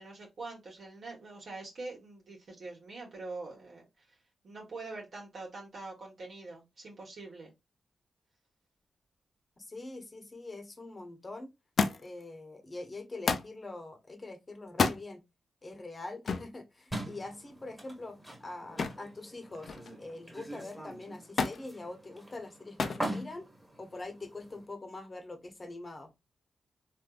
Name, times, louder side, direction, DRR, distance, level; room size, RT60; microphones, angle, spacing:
voice 1, 0.0-4.2 4.4-7.5, right 3 dB, 65° right, 1.3 m, -44 dB
voice 2, 9.6-11.5 12.0-15.2 15.6-19.7 20.0-23.5 23.8-26.1, left 2 dB, 35° left, 0.9 m, -44 dB
Thump thud, 11.8-12.2 13.3-13.6 14.7-15.0 16.3-16.5 18.8-19.1 19.5-20.0 21.4-21.6 22.8-23.1 24.0-24.5 25.5-25.6, left 4 dB, 65° left, 0.4 m, -30 dB
sound 1, 16.9-24.7, right 1 dB, 5° right, 1.5 m, -43 dB
3.4 x 2.6 x 2.4 m
cardioid pair, 55°, 0 cm